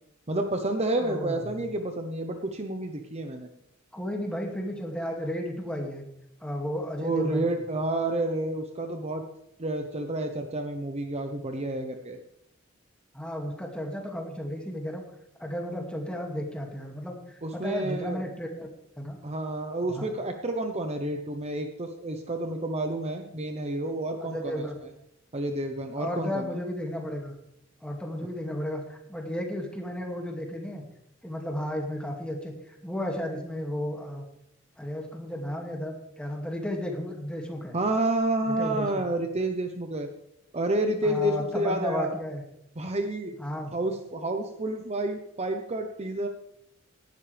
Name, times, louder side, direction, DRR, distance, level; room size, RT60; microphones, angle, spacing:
voice 1, 0.3-3.5 7.0-9.2 9.6-12.2 17.4-18.2 19.2-24.7 25.3-26.5 37.7-40.1 40.5-42.1 42.8-43.3 43.7-46.3, right 1 dB, 30° right, 5 dB, 0.9 m, -29 dB
voice 2, 1.0-1.6 3.9-6.0 6.4-7.5 13.1-15.0 15.4-18.7 19.0-19.2 19.9-20.1 24.3-24.8 26.0-27.3 27.8-30.9 31.2-32.5 32.8-34.2 34.8-37.7 38.6-39.0 41.0-42.4 43.4-43.8, left 1 dB, 5° left, 1 dB, 2.3 m, -33 dB
17.5 x 12.0 x 3.5 m, 0.78 s
head